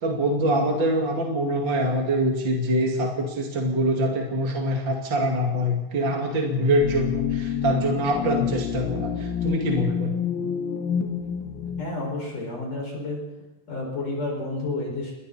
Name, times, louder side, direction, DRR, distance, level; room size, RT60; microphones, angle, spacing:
voice 1, 0.0-10.2, equal, 40° right, 1 dB, 1.8 m, -24 dB
sound 1, 6.8-11.8, left 8 dB, 90° left, 4.1 m, -28 dB
voice 2, 11.8-13.2 13.7-15.2, left 2 dB, 40° left, -2 dB, 7.2 m, -30 dB
28.5 x 22.0 x 4.3 m, 1.0 s
omnidirectional pair, 5.6 m